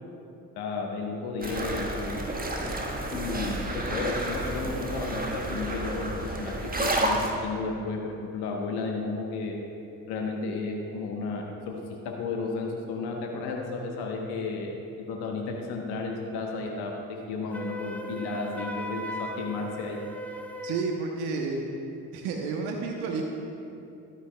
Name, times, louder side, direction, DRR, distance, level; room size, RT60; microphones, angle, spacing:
voice 1, 0.5-2.2 3.1-9.5 10.1-11.7 12.0-14.7 15.1-16.9 17.3-20.0, left 3 dB, 70° left, 1 dB, 1.0 m, -33 dB
sound 1, 1.4-7.3, right 1 dB, 20° right, 1.4 m, -30 dB
Wind instrument woodwind instrument, 17.5-20.9, equal, 5° left, 0.8 m, -37 dB
voice 2, 20.6-21.6 22.1-23.2, right 4 dB, 70° right, 2 dB, 0.9 m, -30 dB
12.5 x 9.7 x 2.2 m, 2.7 s
hypercardioid pair, 45°, 41 cm